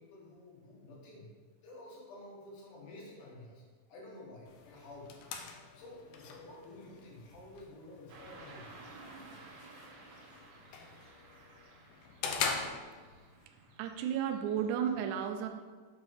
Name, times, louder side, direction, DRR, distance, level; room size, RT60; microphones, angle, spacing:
voice 1, 0.0-1.4 1.6-5.2 5.7-8.8, left 1 dB, 65° left, -3 dB, 2.7 m, -51 dB
sound 1, 4.5-13.5, left 5 dB, 80° left, 2.1 m, -43 dB
Car passing by / Traffic noise roadway noise, 8.1-14.9, right 3 dB, 70° right, 2.2 m, -55 dB
voice 2, 13.8-15.5, right 8 dB, 90° right, 5 dB, 1.7 m, -33 dB
6.8 x 3.9 x 6.0 m, 1.4 s
omnidirectional pair, 4.3 m